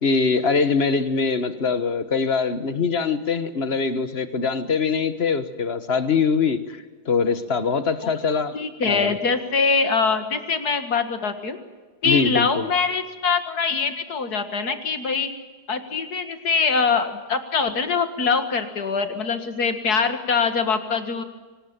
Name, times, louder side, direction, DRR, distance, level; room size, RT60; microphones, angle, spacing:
voice 1, 0.0-8.6 8.8-9.2 12.0-12.7, left 5 dB, 40° left, 12 dB, 1.5 m, -23 dB
voice 2, 8.0-11.6 12.0-15.3 15.7-21.2, left 5 dB, 65° left, 9 dB, 2.3 m, -23 dB
23.5 x 19.0 x 8.9 m, 1.3 s
omnidirectional pair, 1.8 m